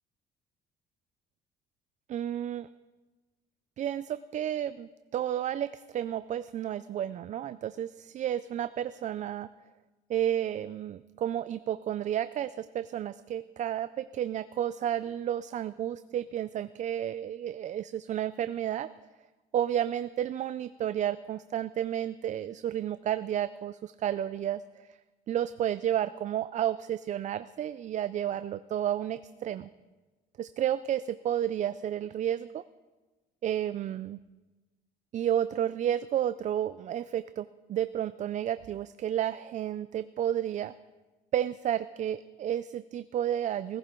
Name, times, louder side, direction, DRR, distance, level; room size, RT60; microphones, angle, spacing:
voice 1, 2.1-2.7 3.8-9.5 10.1-18.9 19.5-24.6 25.3-29.7 30.4-32.6 33.4-34.2 35.1-40.7 41.3-43.8, right 10 dB, 45° right, 13 dB, 0.4 m, -31 dB
17.0 x 15.5 x 3.8 m, 1.2 s
cardioid pair, 110°, 17 cm